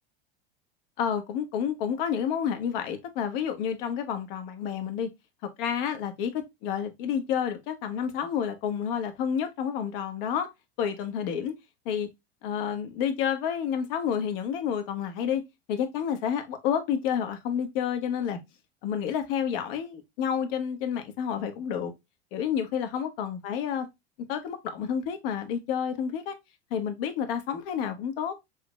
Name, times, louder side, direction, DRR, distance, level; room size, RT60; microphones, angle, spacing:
voice 1, 1.0-5.1 5.6-10.5 10.8-11.5 11.8-12.1 12.4-15.4 15.7-18.4 18.8-21.9 22.3-23.9 24.3-26.3 26.7-28.3, left 8 dB, 55° left, 1.2 m, -29 dB
6.2 x 2.9 x 2.2 m
hypercardioid pair, 85°, 33 cm